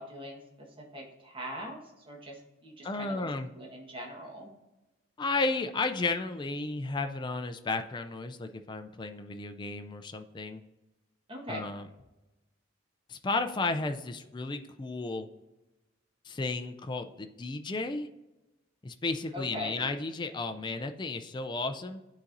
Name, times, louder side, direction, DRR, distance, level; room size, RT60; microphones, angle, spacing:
voice 1, 0.0-3.3 3.5-4.5 11.3-11.6 19.3-19.9, equal, 25° right, -1 dB, 1.3 m, -41 dB
voice 2, 2.8-3.5 5.2-10.6 11.5-11.9 13.1-15.3 16.2-18.1 18.8-22.0, left 3 dB, 20° left, 7 dB, 0.4 m, -33 dB
11.5 x 4.1 x 2.6 m, 1.0 s
head